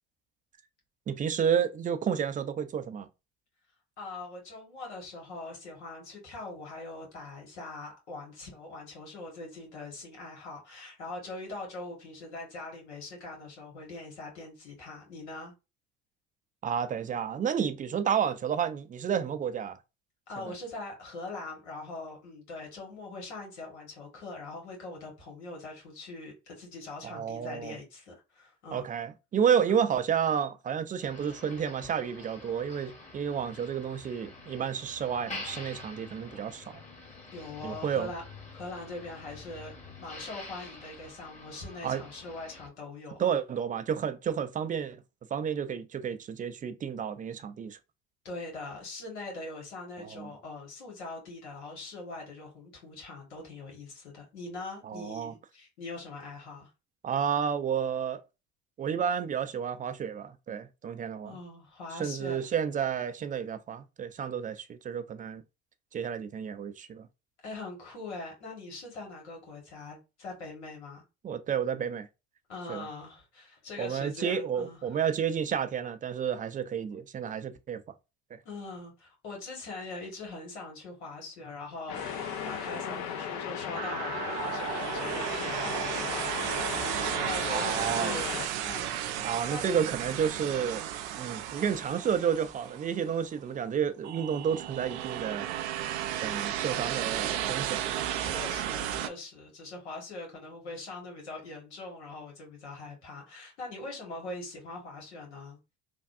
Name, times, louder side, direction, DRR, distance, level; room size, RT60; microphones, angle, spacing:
voice 1, 1.1-3.1 16.6-19.8 27.0-27.7 28.7-36.8 37.6-38.1 41.8-42.0 43.2-45.0 45.3-47.8 50.0-50.3 54.8-55.3 57.0-58.2 58.8-61.4 62.0-65.4 65.9-67.1 71.2-72.1 72.7-72.8 73.8-77.8 78.3-78.4 87.5-88.2 89.2-90.8 91.2-95.5 96.2-97.8 98.3-98.4, right 8 dB, 25° right, 0.4 m, -31 dB
voice 2, 4.0-15.5 20.3-28.8 29.7-29.8 37.3-38.2 38.5-43.2 48.2-56.7 61.2-62.5 67.4-71.0 72.5-75.0 78.4-89.6 98.2-105.6, left 2 dB, 90° left, 1.6 m, -42 dB
Motor vehicle (road), 31.0-42.7, left 3 dB, 20° left, 1.2 m, -47 dB
sound 1, 81.9-88.5, left 8 dB, 55° left, 0.6 m, -36 dB
sound 2, 82.0-83.0 83.8-93.2 94.0-99.1, right 11 dB, 80° right, 0.5 m, -34 dB
3.3 x 2.2 x 2.6 m
hypercardioid pair, 75°, 33 cm